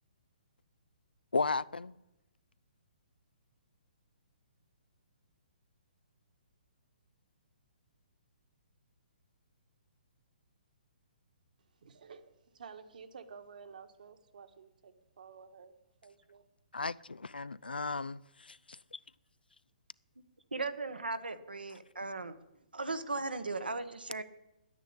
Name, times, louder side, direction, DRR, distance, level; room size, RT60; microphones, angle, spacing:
voice 1, 1.3-2.0 16.7-19.0 21.7-21.8, left 4 dB, 90° left, 0.4 m, -35 dB
voice 2, 11.8-15.7 16.0-16.4, right 6 dB, 60° right, 1.6 m, -52 dB
voice 3, 20.5-22.3 22.7-24.2, right 3 dB, 90° right, 1.3 m, -37 dB
10.5 x 9.8 x 8.4 m
figure-of-eight pair, 135°, 5 cm